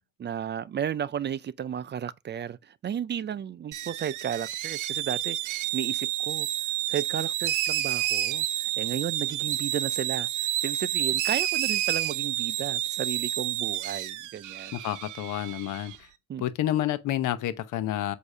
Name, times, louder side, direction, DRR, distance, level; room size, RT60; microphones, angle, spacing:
voice 1, 0.2-6.5 6.9-14.8 16.3-16.5, right 9 dB, 35° right, 0.4 m, -34 dB
sound 1, 3.7-16.0, right 12 dB, 85° right, 0.7 m, -30 dB
voice 2, 14.7-16.1 16.4-18.1, left 12 dB, 85° left, 0.8 m, -29 dB
8.0 x 2.8 x 5.5 m
cardioid pair, 90°, 30 cm